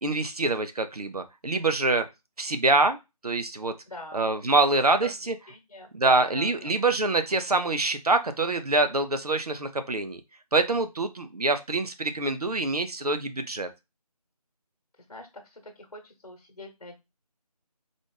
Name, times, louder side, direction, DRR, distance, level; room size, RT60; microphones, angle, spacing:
voice 1, 0.0-2.1 2.4-3.0 3.2-3.7 4.1-5.3 5.9-10.2 10.5-13.7, right 3 dB, 70° right, 9 dB, 0.6 m, -25 dB
voice 2, 3.9-4.3 5.0-5.1 5.5-6.7 15.1-17.0, left 1 dB, 60° left, 4 dB, 1.1 m, -41 dB
4.0 x 2.4 x 3.1 m, 0.23 s
figure-of-eight pair, 165°, 20 cm